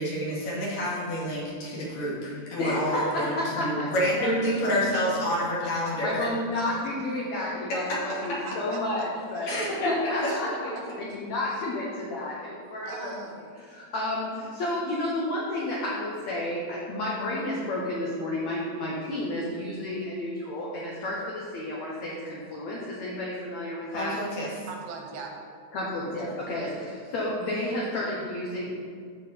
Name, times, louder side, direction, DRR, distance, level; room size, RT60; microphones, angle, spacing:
voice 1, 0.0-6.3 7.9-8.0 9.5-10.3 23.9-24.5, equal, 60° left, -6 dB, 3.3 m, -28 dB
voice 2, 2.6-3.9 4.2-4.6 6.0-9.6 9.8-10.7 11.1-13.1 13.7-24.2 25.7-28.7, left 1 dB, 85° left, -4 dB, 1.5 m, -31 dB
voice 3, 5.6-6.2 6.5-6.9 7.8-7.9 8.2-9.1 9.4-9.9 10.3-10.8 11.5-11.6 12.8-13.5 24.7-25.3, right 4 dB, 85° right, 2 dB, 3.2 m, -41 dB
13.0 x 4.8 x 4.2 m, 2.1 s
omnidirectional pair, 4.7 m